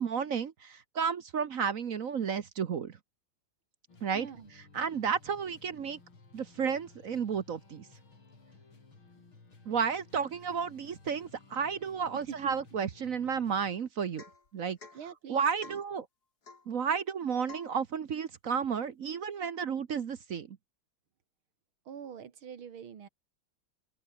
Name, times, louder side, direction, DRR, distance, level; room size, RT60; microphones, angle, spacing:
voice 1, 0.0-3.0 4.0-4.3 4.7-6.0 6.3-7.9 9.7-14.2 14.5-14.8 15.3-16.0 16.7-20.6, right 6 dB, 50° right, 1.2 m, -32 dB
sound 1, 3.9-13.7, left 3 dB, 75° left, 5.7 m, -57 dB
voice 2, 4.1-4.5 12.1-12.6 14.9-15.8 21.9-23.1, right 8 dB, 80° right, 2.7 m, -44 dB
Domestic sounds home sounds / Chink clink / Drip, 14.2-14.5 14.8-15.0 15.6-15.9 16.4-16.7 17.5-17.8, left 4 dB, 50° left, 3.7 m, -50 dB
open air
omnidirectional pair, 2.2 m